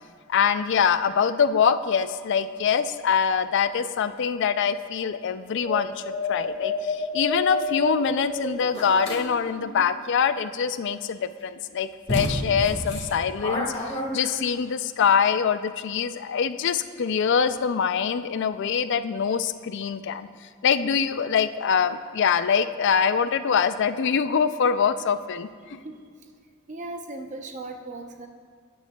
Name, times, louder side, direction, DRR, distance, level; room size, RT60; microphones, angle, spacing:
voice 1, 0.3-20.3 20.6-25.8, left 6 dB, 55° left, 12 dB, 0.4 m, -24 dB
sound 1, 5.6-9.9, left 2 dB, 10° left, 2.2 m, -31 dB
sound 2, 8.7-9.2 11.4-11.5 12.1-14.6, equal, 30° left, 1.8 m, -29 dB
voice 2, 26.7-28.3, right 2 dB, 35° right, 4 dB, 0.7 m, -37 dB
15.0 x 9.6 x 2.3 m, 2.1 s
head